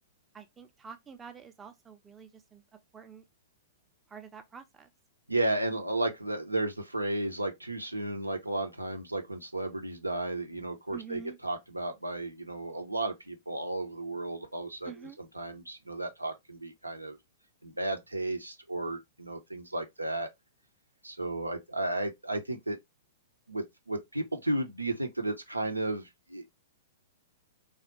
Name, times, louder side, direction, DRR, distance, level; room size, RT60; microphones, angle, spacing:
voice 1, 0.3-2.6 2.9-3.2 4.1-4.9 10.9-11.4 14.8-15.2, right 6 dB, 15° right, 0.6 m, -47 dB
voice 2, 5.3-14.9 15.2-17.2 17.6-20.3 21.0-22.8 23.5-26.5, right 2 dB, 85° right, 0.7 m, -33 dB
3.3 x 2.4 x 3.0 m
figure-of-eight pair, 105°, 0 cm